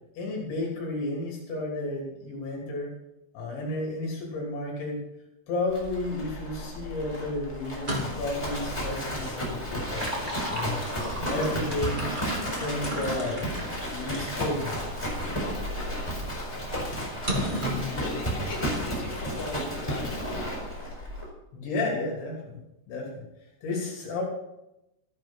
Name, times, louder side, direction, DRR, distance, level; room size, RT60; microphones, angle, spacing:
voice 1, 0.2-2.9 3.3-5.0 5.5-10.1 10.5-10.8 11.3-12.1 12.6-13.5 13.9-14.7 21.5-22.6 22.9-23.2 23.6-24.2, left 2 dB, 70° left, -2 dB, 5.3 m, -32 dB
Livestock farm animals working animals, 5.7-21.2, equal, 5° left, 3.8 m, -33 dB
sound 1, 7.8-8.4 9.7-14.5 15.1-15.3 17.3-17.9, equal, 20° right, 1.3 m, -34 dB
voice 2, 17.9-20.8, left 2 dB, 50° left, -5 dB, 4.7 m, -39 dB
14.0 x 10.5 x 5.6 m, 0.89 s
omnidirectional pair, 5.5 m